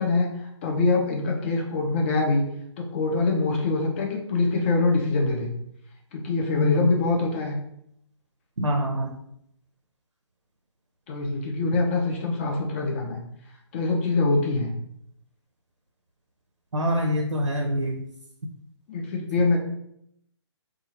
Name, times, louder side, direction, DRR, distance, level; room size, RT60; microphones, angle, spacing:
voice 1, 0.0-2.4 2.8-5.5 6.1-7.6 11.1-13.2 13.7-14.7 18.9-19.6, left 3 dB, 25° left, 0 dB, 0.5 m, -24 dB
voice 2, 6.5-6.9 8.6-9.1 16.7-18.0, left 1 dB, 85° right, 1 dB, 0.4 m, -25 dB
2.7 x 2.3 x 2.8 m, 0.74 s
figure-of-eight pair, 135°, 15 cm